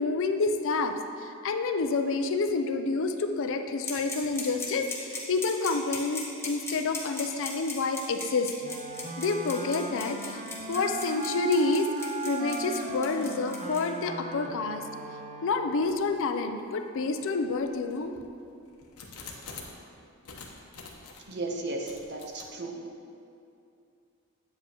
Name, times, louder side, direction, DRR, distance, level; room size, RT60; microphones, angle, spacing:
voice 1, 0.0-8.5 9.2-10.4 10.7-11.9 12.2-14.8 15.4-18.1, left 3 dB, 60° left, 7 dB, 0.5 m, -28 dB
sound 1, 3.8-13.8, left 4 dB, 10° left, 1.0 m, -37 dB
Wind instrument woodwind instrument, 8.6-16.1, right 3 dB, 35° right, 0.5 m, -38 dB
sound 2, 15.9-16.2 16.8-16.9 17.6-19.8 20.2-21.3 21.9-22.5, left 4 dB, 85° left, 0.9 m, -46 dB
voice 2, 21.3-22.8, right 2 dB, 50° right, 2 dB, 0.8 m, -35 dB
8.5 x 7.6 x 2.9 m, 2.5 s
head